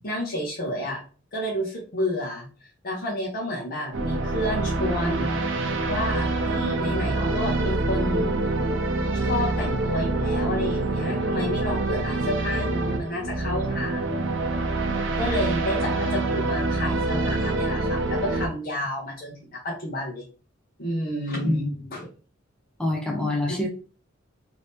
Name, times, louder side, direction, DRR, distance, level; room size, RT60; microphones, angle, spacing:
voice 1, 0.0-1.0 1.3-5.3 5.9-8.3 9.1-14.2 15.2-20.3 20.8-22.1, left 1 dB, 50° left, -4 dB, 0.8 m, -30 dB
sound 1, 3.9-18.5, right 2 dB, 70° right, 0.6 m, -26 dB
voice 2, 21.4-21.9 22.8-23.7, left 1 dB, 5° left, -1 dB, 0.6 m, -26 dB
2.8 x 2.7 x 3.4 m, 0.37 s
head